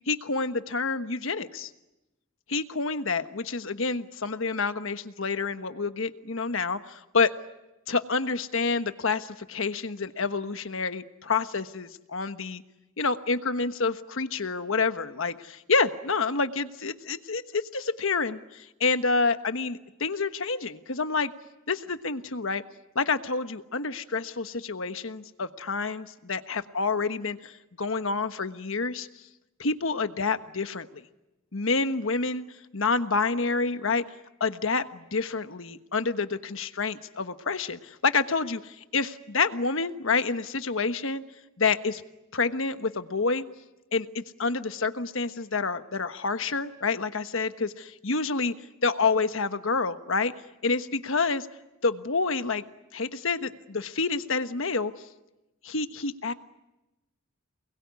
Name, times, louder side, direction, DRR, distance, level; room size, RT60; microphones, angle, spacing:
voice 1, 0.1-1.7 2.5-7.3 7.9-12.6 13.0-21.3 21.7-22.6 22.9-27.5 27.8-29.1 29.6-31.0 31.5-32.4 32.7-34.0 34.4-41.2 41.6-42.0 42.3-43.5 43.9-48.5 48.8-50.3 50.6-51.5 51.8-52.6 52.9-54.9 55.6-56.3, left 4 dB, 70° left, 10 dB, 1.3 m, -28 dB
28.5 x 21.0 x 9.6 m, 0.99 s
head